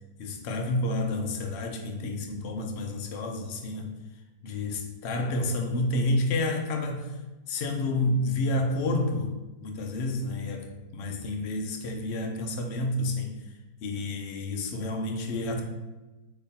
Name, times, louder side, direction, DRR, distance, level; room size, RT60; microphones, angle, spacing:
voice 1, 0.2-4.0 4.4-7.1 7.5-9.3 9.6-13.4 13.8-15.6, left 2 dB, 70° left, 2 dB, 0.6 m, -29 dB
4.1 x 3.0 x 4.1 m, 1.1 s
omnidirectional pair, 1.8 m